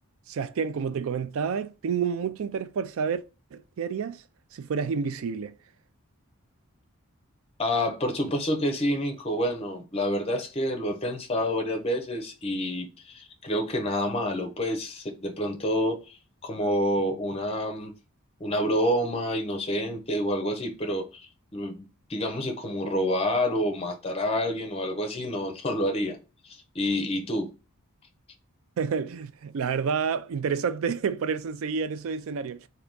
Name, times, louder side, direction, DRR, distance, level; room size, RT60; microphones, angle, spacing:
voice 1, 0.3-3.2 3.5-4.2 4.5-5.5 28.8-32.7, right 6 dB, 65° right, 0.3 m, -29 dB
voice 2, 7.6-17.9 18.4-26.2 26.4-27.5, equal, 25° left, 0.6 m, -28 dB
3.4 x 2.7 x 3.9 m
head